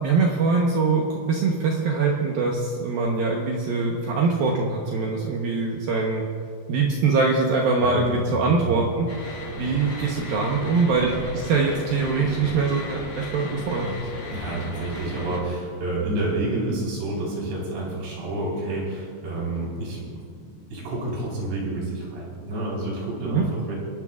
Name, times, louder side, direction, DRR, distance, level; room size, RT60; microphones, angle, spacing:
voice 1, 0.0-6.2 6.7-14.0 23.2-23.5, right 4 dB, 85° right, -1 dB, 2.1 m, -23 dB
voice 2, 8.0-8.8 14.3-20.0 20.4-23.8, right 2 dB, 60° right, -4 dB, 6.0 m, -29 dB
sound 1, 9.1-15.4, left 1 dB, 35° left, 4.6 m, -36 dB
30.0 x 12.0 x 2.4 m, 2.1 s
omnidirectional pair, 5.8 m